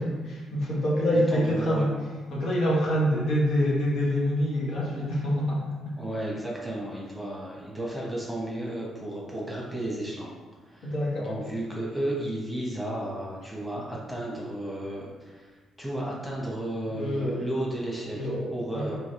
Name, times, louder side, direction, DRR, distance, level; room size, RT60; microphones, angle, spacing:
voice 1, 0.0-1.9 2.3-6.0 10.8-11.4 16.9-17.5 18.1-19.0, equal, 70° left, -5 dB, 1.3 m, -26 dB
voice 2, 1.3-1.9 6.0-10.3 10.7-10.9 11.2-15.5 15.8-19.0, right 1 dB, ahead, -4 dB, 1.1 m, -33 dB
3.5 x 2.9 x 4.3 m, 1.4 s
cardioid pair, 90°, 0 cm